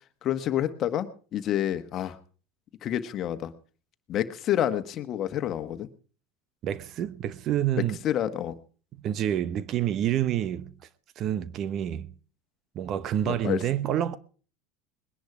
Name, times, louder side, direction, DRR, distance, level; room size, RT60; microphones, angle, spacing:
voice 1, 0.2-2.2 2.8-3.5 4.1-5.9 8.0-8.5 13.2-13.6, left 11 dB, 45° left, 1.4 m, -28 dB
voice 2, 6.6-8.0 8.9-10.8 11.2-12.1 12.7-14.2, right 11 dB, 45° right, 0.8 m, -28 dB
21.0 x 10.5 x 4.9 m
hypercardioid pair, 100°, 0 cm